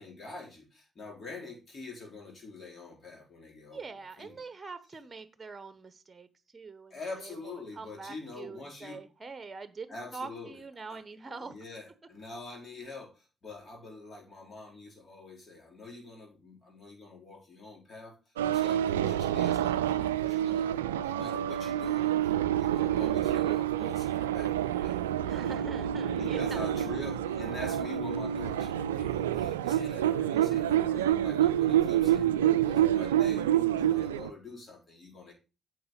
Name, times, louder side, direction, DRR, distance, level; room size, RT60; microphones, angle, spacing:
voice 1, 0.0-3.8 4.2-4.4 6.9-9.0 9.9-10.6 10.9-11.0 11.4-18.2 18.5-25.0 26.2-35.3, left 3 dB, 45° left, 4.8 m, -45 dB
voice 2, 3.7-6.3 6.5-7.4 7.7-11.6 25.3-26.8, right 4 dB, 30° right, 1.0 m, -44 dB
sound 1, 18.4-34.3, right 11 dB, 85° right, 0.3 m, -28 dB
9.2 x 6.4 x 3.9 m
hypercardioid pair, 45°, 0 cm